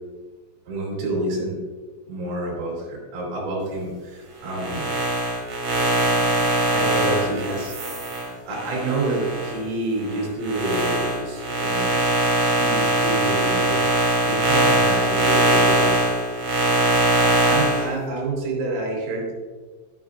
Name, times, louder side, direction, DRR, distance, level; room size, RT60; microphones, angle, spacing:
voice 1, 0.7-1.6 2.1-4.9 6.7-7.8 8.1-8.2 8.5-12.0 12.5-13.8 14.3-16.0 17.2-19.3, right 2 dB, 75° right, -2 dB, 5.6 m, -28 dB
sound 1, 4.5-9.6 10.0-17.9, right 1 dB, 45° right, 3.5 m, -21 dB
12.0 x 11.5 x 2.4 m, 1.4 s
omnidirectional pair, 6.0 m